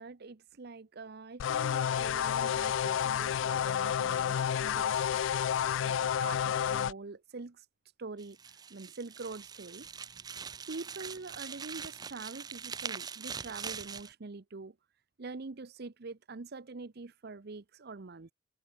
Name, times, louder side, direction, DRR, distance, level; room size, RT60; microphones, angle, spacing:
voice 1, 0.0-5.2 5.8-7.6 8.0-8.4 8.7-9.9 10.7-14.8 15.2-18.3, right 3 dB, 55° right, 0.8 m, -45 dB
sound 1, 1.4-6.9, left 9 dB, 75° left, 0.3 m, -30 dB
sound 2, 8.2-14.1, right 6 dB, 20° right, 0.3 m, -43 dB
head